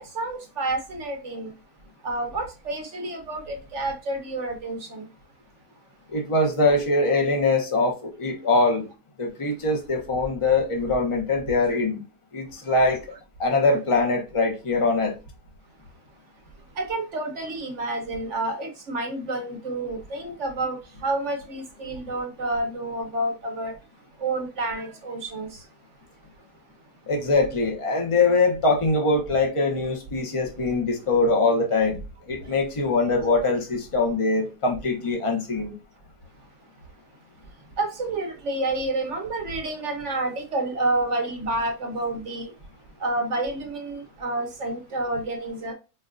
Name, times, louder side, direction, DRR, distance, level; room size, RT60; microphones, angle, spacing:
voice 1, 0.0-1.5 2.0-5.1 11.5-11.6 16.8-23.7 24.2-25.5 37.8-42.5 43.0-45.7, right 2 dB, 55° right, 0.9 m, -29 dB
voice 2, 6.1-8.9 9.2-12.0 12.3-13.0 13.4-15.1 27.1-32.0 32.3-35.7, left 3 dB, 30° left, 0.6 m, -22 dB
4.2 x 2.3 x 2.4 m
omnidirectional pair, 1.7 m